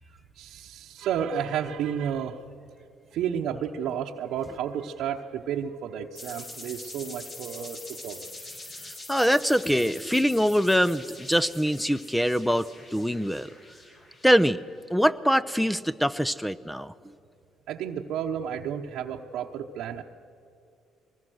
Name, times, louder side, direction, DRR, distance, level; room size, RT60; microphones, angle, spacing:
voice 1, 0.4-2.4 3.1-8.3 17.7-20.0, right 8 dB, 75° right, 0 dB, 1.0 m, -31 dB
sound 1, 6.1-14.7, left 2 dB, 45° left, 6.4 m, -44 dB
voice 2, 8.8-13.5 14.2-14.6 14.9-16.9, equal, ahead, 15 dB, 0.6 m, -24 dB
22.5 x 20.0 x 6.4 m, 2.5 s
supercardioid pair, 70°, 0 cm